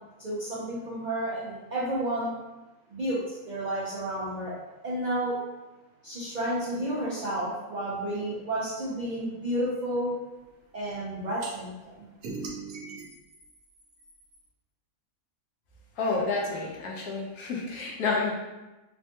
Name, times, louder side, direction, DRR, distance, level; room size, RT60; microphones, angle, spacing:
voice 1, 0.2-2.3 2.9-4.6 4.8-5.4 6.0-10.1 10.7-12.1, right 1 dB, 60° right, -9 dB, 0.4 m, -31 dB
sound 1, 11.4-11.5 12.2-14.4, right 3 dB, 80° right, 1.1 m, -40 dB
voice 2, 16.0-18.3, left 3 dB, 85° left, -2 dB, 1.1 m, -29 dB
3.3 x 2.2 x 2.8 m, 1.1 s
omnidirectional pair, 1.5 m